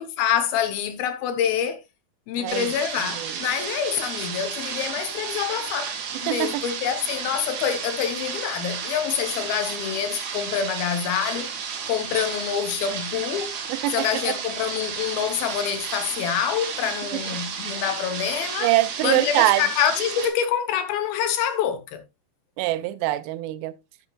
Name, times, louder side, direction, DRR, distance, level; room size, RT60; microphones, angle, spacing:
voice 1, 0.0-1.8 2.3-6.0 6.2-11.5 11.9-13.6 13.9-18.7 19.0-22.0, left 9 dB, 75° left, 2.5 m, -26 dB
voice 2, 2.4-2.7 3.0-3.3 6.3-6.6 13.7-14.3 18.6-19.6 22.6-23.7, right 16 dB, 85° right, 2.8 m, -24 dB
sound 1, 2.5-20.3, right 7 dB, 55° right, 2.3 m, -32 dB
9.6 x 9.0 x 2.2 m
omnidirectional pair, 4.8 m